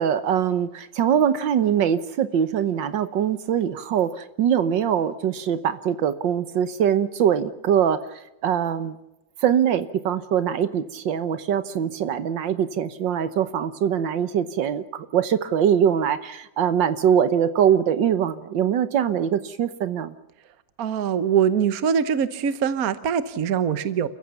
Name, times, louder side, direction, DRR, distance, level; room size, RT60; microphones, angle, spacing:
voice 1, 0.0-9.0 9.4-20.1, right 9 dB, 80° right, 12 dB, 1.7 m, -23 dB
voice 2, 20.8-24.1, right 7 dB, 55° right, 13 dB, 1.4 m, -23 dB
29.5 x 15.0 x 7.0 m, 0.91 s
omnidirectional pair, 2.0 m